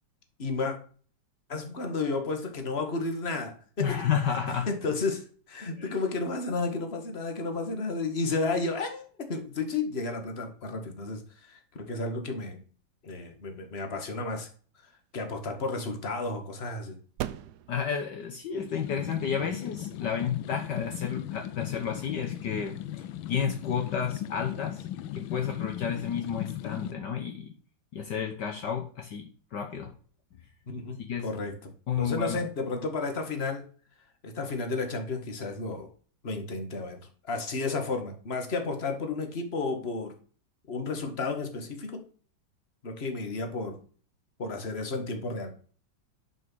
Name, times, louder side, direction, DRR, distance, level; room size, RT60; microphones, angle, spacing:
voice 1, 0.4-0.8 1.5-3.9 4.3-12.6 13.0-14.5 15.1-17.0 30.7-31.0 31.2-31.7 32.0-33.7 34.2-35.9 36.2-40.1 40.7-42.0 42.8-43.8 44.4-45.5, left 3 dB, 35° left, 5 dB, 1.9 m, -32 dB
voice 2, 3.8-4.7 5.8-5.9 17.7-24.8 25.1-27.5 27.9-29.9 31.0-31.3 31.9-32.4, left 7 dB, 65° left, 4 dB, 1.6 m, -31 dB
sound 1, 14.7-21.9, right 12 dB, 70° right, 1.1 m, -45 dB
sound 2, 18.6-26.9, left 12 dB, 90° left, 1.4 m, -37 dB
11.0 x 5.5 x 6.3 m, 0.43 s
omnidirectional pair, 2.1 m